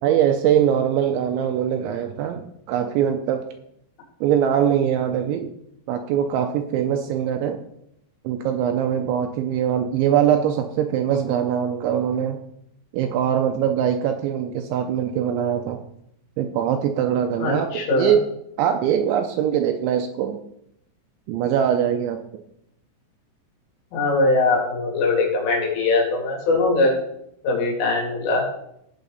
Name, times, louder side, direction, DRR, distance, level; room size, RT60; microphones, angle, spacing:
voice 1, 0.0-3.5 4.2-5.5 5.9-7.6 8.2-12.4 12.9-15.8 16.4-18.2 18.6-20.4 21.3-22.2, right 9 dB, 85° right, 6 dB, 2.7 m, -22 dB
voice 2, 17.4-18.1 23.9-26.9 27.4-28.4, left 3 dB, 70° left, -2 dB, 5.6 m, -21 dB
16.5 x 8.4 x 4.1 m, 0.75 s
omnidirectional pair, 6.0 m